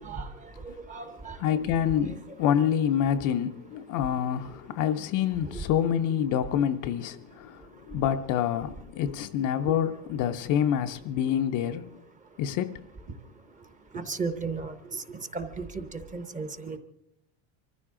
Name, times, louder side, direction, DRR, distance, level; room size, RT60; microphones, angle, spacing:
voice 1, 0.0-1.4 2.1-2.2 2.6-2.7 5.4-5.6 13.9-16.8, right 4 dB, 15° right, 0.7 m, -36 dB
voice 2, 1.4-12.0 12.4-12.9, left 9 dB, 40° left, 0.5 m, -27 dB
24.0 x 15.0 x 3.7 m
cardioid pair, 155°, 49 cm